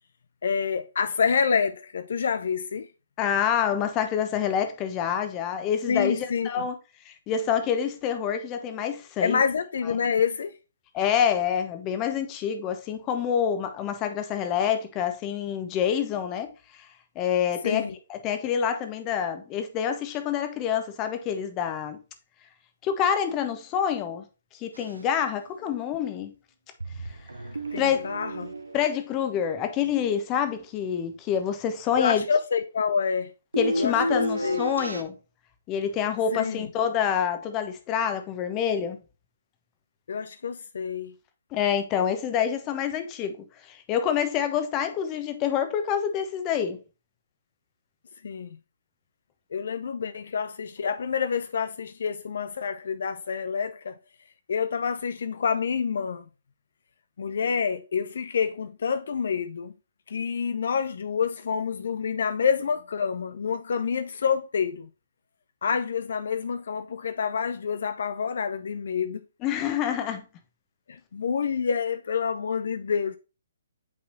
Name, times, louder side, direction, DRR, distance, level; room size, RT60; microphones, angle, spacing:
voice 1, 0.4-2.9 5.9-6.7 9.2-10.5 17.6-17.9 27.7-28.5 32.0-33.3 33.8-34.6 36.3-36.7 40.1-41.1 48.2-48.6 49.5-54.0 54.5-56.2 57.2-59.7 60.1-64.9 65.6-69.2 70.9-73.2, left 6 dB, 60° left, 0.5 m, -27 dB
voice 2, 3.2-6.8 7.1-9.4 10.9-16.5 17.1-17.8 18.1-22.0 22.8-24.2 24.6-26.3 27.8-28.1 28.7-32.2 33.6-35.1 35.7-39.0 41.5-46.8 69.4-70.2, left 8 dB, 25° left, 1.0 m, -27 dB
sound 1, 24.8-25.4 25.6-25.7 26.8-29.9 33.5-35.0, equal, 85° right, 0.9 m, -32 dB
8.4 x 4.8 x 2.7 m
figure-of-eight pair, 130°, 0 cm